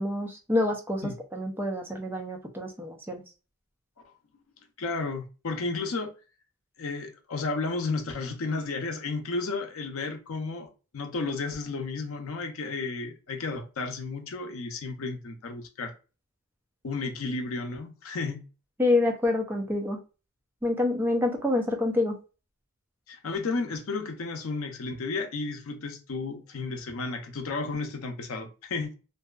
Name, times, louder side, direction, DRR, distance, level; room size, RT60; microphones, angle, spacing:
voice 1, 0.0-3.2 18.8-20.0 20.6-22.2, left 2 dB, 10° right, 0.4 m, -27 dB
voice 2, 4.8-6.1 6.8-15.9 16.8-18.4 23.1-28.9, left 3 dB, 75° left, 0.5 m, -33 dB
2.6 x 2.3 x 2.3 m
head